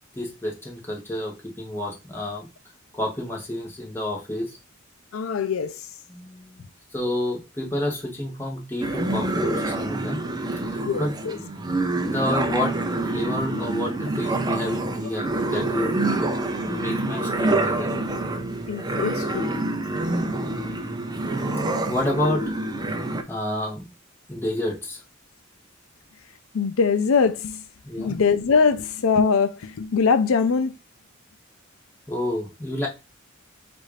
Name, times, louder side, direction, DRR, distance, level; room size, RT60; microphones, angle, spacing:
voice 1, 0.1-2.5 2.9-4.6 6.1-6.7 6.9-10.2 10.7-15.9 16.6-17.9 21.8-22.5 23.3-23.9 24.3-25.0 27.8-28.1 32.1-32.9, left 1 dB, 10° left, 1.2 m, -29 dB
voice 2, 5.1-5.9 10.8-11.4 12.5-12.6 13.5-13.6 18.7-19.5 19.9-20.1 21.3-21.4 26.5-27.6 28.0-30.8, left 5 dB, 80° left, 0.5 m, -22 dB
sound 1, 8.8-23.2, right 2 dB, 20° right, 0.5 m, -27 dB
4.3 x 2.6 x 4.8 m
head